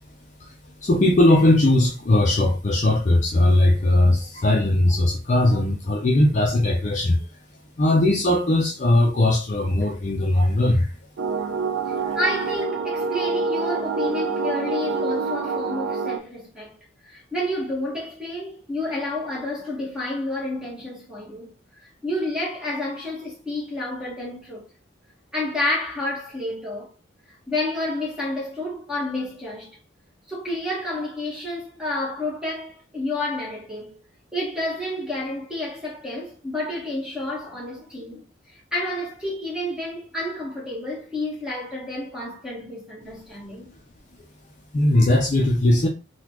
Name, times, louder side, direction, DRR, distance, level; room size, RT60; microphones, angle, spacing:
voice 1, 0.8-7.2 7.8-10.9 12.1-12.2 44.7-45.9, left 1 dB, 35° left, 0.5 m, -19 dB
sound 1, 11.2-16.2, right 4 dB, 65° right, 0.4 m, -26 dB
voice 2, 11.9-16.7 17.0-21.5 22.0-24.7 25.3-26.9 27.5-29.8 30.3-34.0 34.3-43.7, left 1 dB, 5° right, 1.4 m, -30 dB
3.9 x 2.3 x 3.0 m
head